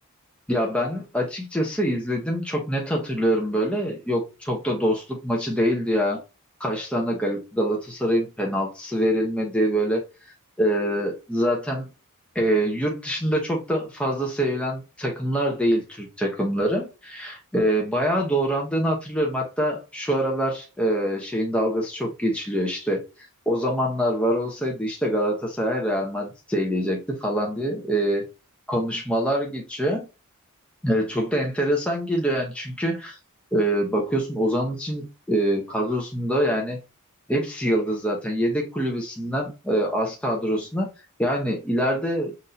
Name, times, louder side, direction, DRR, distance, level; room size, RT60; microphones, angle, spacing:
voice 1, 0.5-6.2 6.6-10.0 10.6-11.9 12.3-28.2 28.7-30.1 30.8-33.2 33.5-36.8 37.3-40.9 41.2-42.3, equal, 5° left, -1 dB, 0.7 m, -25 dB
5.9 x 2.6 x 2.6 m, 0.29 s
head